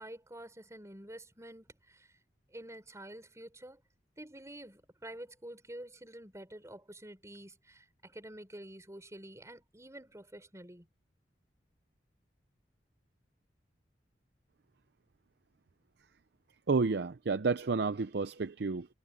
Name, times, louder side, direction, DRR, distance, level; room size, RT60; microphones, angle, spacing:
voice 1, 0.0-2.1 2.5-3.8 4.2-10.9, right 1 dB, 15° right, 6.0 m, -48 dB
voice 2, 16.7-18.9, right 4 dB, 65° right, 0.6 m, -30 dB
head